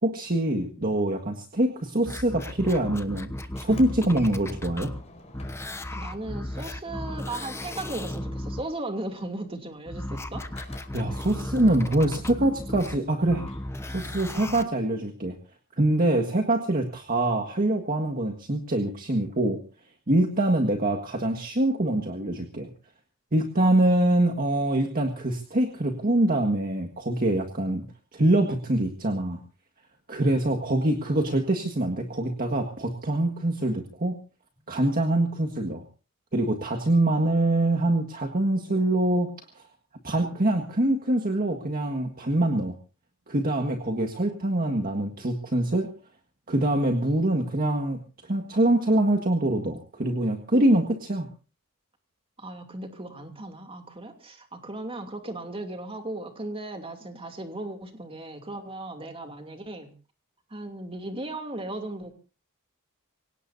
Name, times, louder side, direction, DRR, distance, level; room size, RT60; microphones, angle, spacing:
voice 1, 0.0-3.3 3.6-4.9 10.9-13.5 13.9-15.4 15.8-19.6 20.1-22.7 23.3-27.9 28.1-29.4 30.1-34.2 34.7-35.8 36.3-39.6 40.0-42.7 43.3-45.9 46.5-51.3, right 1 dB, 40° right, 1.7 m, -24 dB
sound 1, 2.1-5.0 5.3-8.6 9.9-14.6 15.3-15.4, left 1 dB, 10° left, 1.0 m, -35 dB
Sliding door, 3.5-7.7 8.0-14.4, left 2 dB, 30° left, 4.8 m, -51 dB
voice 2, 5.9-10.5 52.4-59.9 60.5-62.1, right 2 dB, 25° right, 2.8 m, -36 dB
24.5 x 18.0 x 2.7 m
head